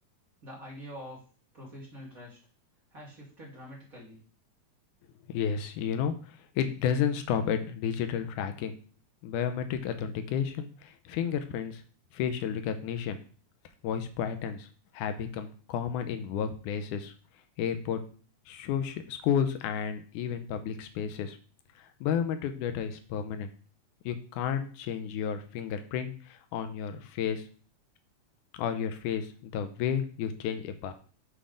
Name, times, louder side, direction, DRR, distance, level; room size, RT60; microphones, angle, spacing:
voice 1, 0.4-1.2 1.5-2.4 2.9-4.2, equal, 35° right, -4 dB, 1.7 m, -45 dB
voice 2, 5.3-8.7 9.2-11.8 12.1-13.2 13.8-14.7 14.9-17.1 17.6-18.0 18.5-21.4 21.8-23.5 24.1-27.5 28.5-30.9, left 8 dB, 85° left, 9 dB, 2.2 m, -32 dB
7.5 x 3.4 x 5.1 m, 0.41 s
omnidirectional pair, 3.5 m